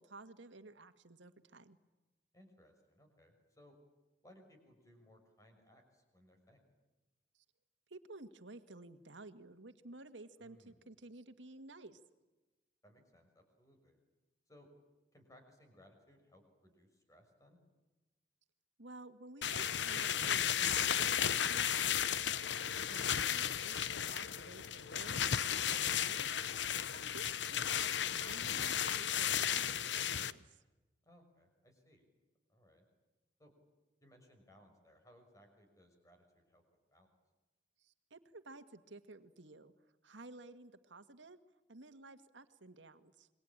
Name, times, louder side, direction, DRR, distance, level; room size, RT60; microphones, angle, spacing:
voice 1, 0.0-1.8 7.3-7.4 7.9-12.0 18.8-22.1 22.9-26.5 26.9-30.6 37.8-39.7 40.0-41.4 41.7-43.3, right 2 dB, 85° right, 10 dB, 1.8 m, -54 dB
voice 2, 2.3-3.7 4.2-6.6 10.4-10.8 12.8-14.0 14.5-14.7 15.1-17.6 31.0-32.1 32.5-32.8 33.4-33.5 34.0-36.6 36.9-37.1, equal, 20° left, 4 dB, 6.1 m, -64 dB
sound 1, 19.4-30.3, left 9 dB, 75° left, 0.9 m, -34 dB
27.5 x 22.5 x 8.8 m, 1.1 s
head